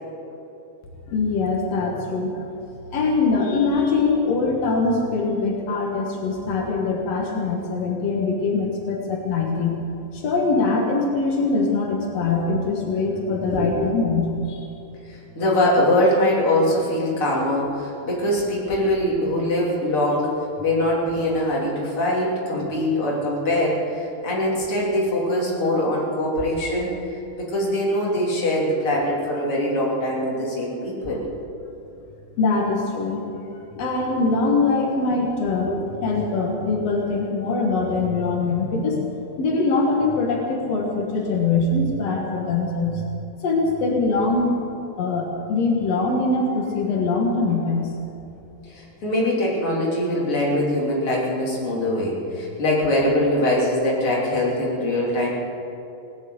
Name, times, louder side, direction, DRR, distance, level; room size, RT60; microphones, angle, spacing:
voice 1, 1.1-2.4 2.9-9.8 10.1-14.7 32.4-33.2 33.8-35.7 36.0-39.1 39.4-43.1 43.4-44.5 45.0-47.9, left 3 dB, 80° left, 0 dB, 1.4 m, -22 dB
voice 2, 12.9-13.7 15.0-20.3 20.6-31.2 33.7-33.8 35.7-35.8 48.7-55.4, left 1 dB, 35° left, -4 dB, 3.1 m, -23 dB
18.5 x 9.5 x 8.0 m, 2.8 s
omnidirectional pair, 5.5 m